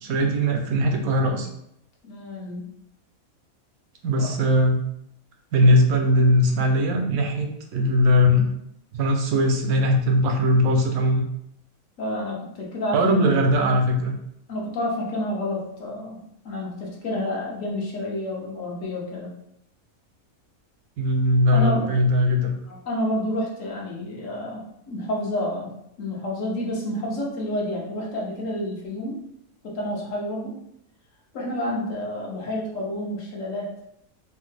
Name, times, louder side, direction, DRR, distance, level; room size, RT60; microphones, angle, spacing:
voice 1, 0.0-1.5 4.0-4.8 5.5-8.5 8.9-11.2 12.9-14.1 21.0-22.5, equal, 80° right, 3 dB, 1.0 m, -20 dB
voice 2, 2.0-2.7 4.2-4.3 12.0-13.3 14.5-16.2 16.4-19.3 21.5-21.9 22.7-25.7 26.0-29.3 29.6-30.6 31.3-33.7, left 1 dB, 65° left, -3 dB, 1.2 m, -29 dB
3.2 x 2.0 x 3.2 m, 0.76 s
omnidirectional pair, 1.5 m